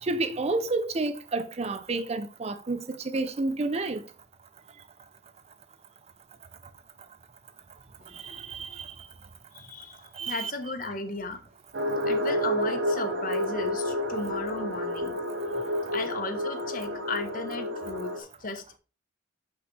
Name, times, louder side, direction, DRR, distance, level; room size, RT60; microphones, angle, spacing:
voice 1, 0.0-4.0 8.1-8.9 10.1-10.5, right 3 dB, 35° right, 0.5 m, -30 dB
voice 2, 9.5-10.0 10.3-11.4 12.0-15.2 15.9-18.8, left 3 dB, 50° left, 1.0 m, -35 dB
sound 1, 11.7-18.2, equal, 75° right, 1.3 m, -30 dB
6.2 x 5.6 x 3.3 m
head